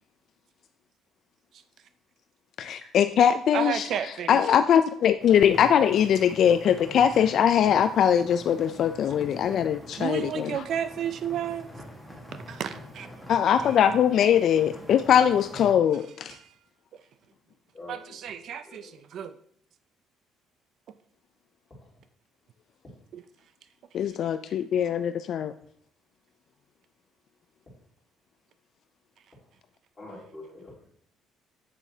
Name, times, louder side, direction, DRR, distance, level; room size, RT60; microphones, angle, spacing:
voice 1, 2.6-3.9 4.3-10.6 13.3-16.4 23.9-25.5, left 9 dB, 55° left, 10 dB, 0.3 m, -22 dB
voice 2, 3.5-4.4 10.0-11.7 12.5-13.1 13.5-13.6 16.3-16.5 17.9-19.4 23.1-23.2, right 9 dB, 55° right, 12 dB, 0.4 m, -32 dB
sound 1, 5.2-15.7, equal, ahead, 1.4 m, -45 dB
voice 3, 17.7-19.0 21.8-21.9 29.9-30.9, left 2 dB, 20° left, -6 dB, 3.4 m, -46 dB
8.2 x 7.1 x 2.7 m, 0.62 s
cardioid pair, 140°, 0 cm